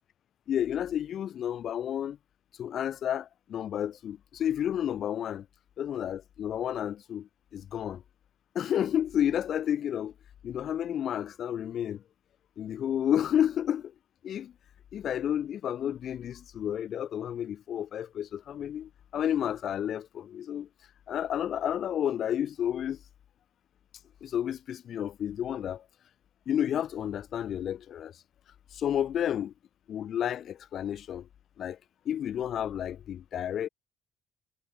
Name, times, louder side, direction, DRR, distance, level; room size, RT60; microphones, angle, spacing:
voice 1, 0.5-2.2 2.6-5.5 5.8-8.0 8.6-10.1 10.4-12.0 12.6-13.9 14.2-14.5 14.9-20.7 21.1-23.0 24.2-25.8 26.5-28.1 28.7-29.5 29.9-31.3 31.6-31.8 32.1-33.7, left 10 dB, 60° left, 0.3 m, -31 dB
cardioid pair, 85°, 0 cm